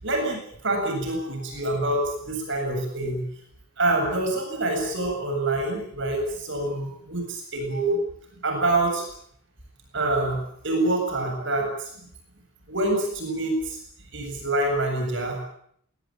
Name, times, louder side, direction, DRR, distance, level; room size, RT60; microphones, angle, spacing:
voice 1, 0.0-3.3 3.8-8.0 8.4-9.0 9.9-12.1 12.7-13.8 14.1-15.4, right 2 dB, 60° right, 3 dB, 8.0 m, -26 dB
21.5 x 20.0 x 9.2 m, 0.68 s
head